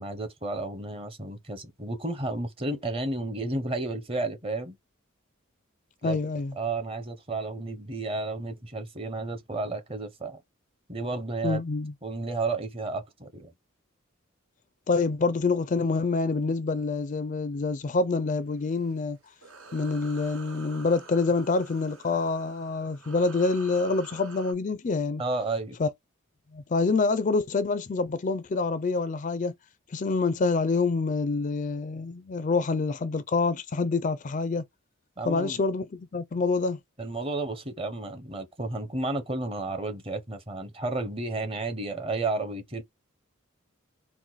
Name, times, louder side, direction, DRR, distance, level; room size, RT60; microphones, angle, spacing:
voice 1, 0.0-4.8 6.0-6.2 6.6-10.4 10.9-11.6 12.0-13.5 25.2-25.8 35.2-35.6 37.0-42.8, right 2 dB, 25° right, 0.8 m, -32 dB
voice 2, 6.0-6.5 11.4-11.9 14.9-19.2 19.7-25.2 25.8-25.9 26.5-29.5 29.9-34.6 35.3-36.8, left 3 dB, 35° left, 0.4 m, -26 dB
sound 1, 18.5-24.5, right 4 dB, 80° right, 1.2 m, -48 dB
4.5 x 2.1 x 3.9 m
head